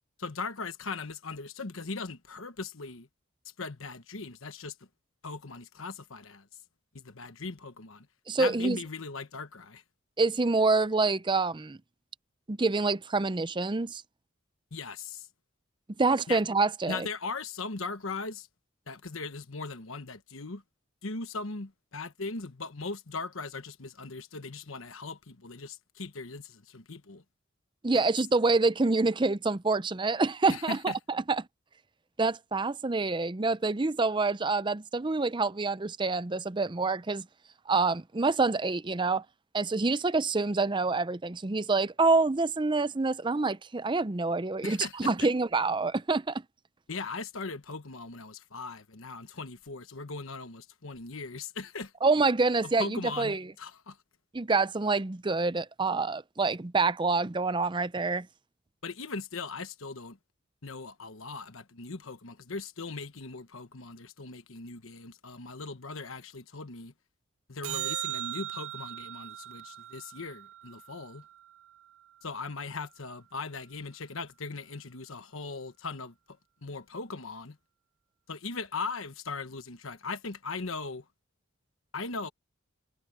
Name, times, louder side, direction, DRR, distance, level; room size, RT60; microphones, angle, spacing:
voice 1, 0.2-3.1 3.4-4.7 5.2-6.5 6.9-8.1 8.4-9.8 14.7-15.3 16.3-16.4 16.9-18.5 18.9-20.6 21.0-27.2 30.5-31.0 44.6-45.3 46.9-51.9 52.6-54.0 58.8-60.2 60.6-66.9 67.5-71.2 72.2-77.6 78.3-81.0 81.9-82.3, left 4 dB, 70° left, 1.2 m, -39 dB
voice 2, 8.3-8.8 10.2-11.8 12.5-14.0 16.0-17.1 27.8-30.9 31.3-31.4 32.2-37.2 37.7-39.2 39.5-46.4 52.0-53.4 54.3-58.3, right 3 dB, 20° right, 0.6 m, -27 dB
sound 1, 67.6-72.1 78.7-78.8, right 13 dB, 75° right, 0.7 m, -39 dB
head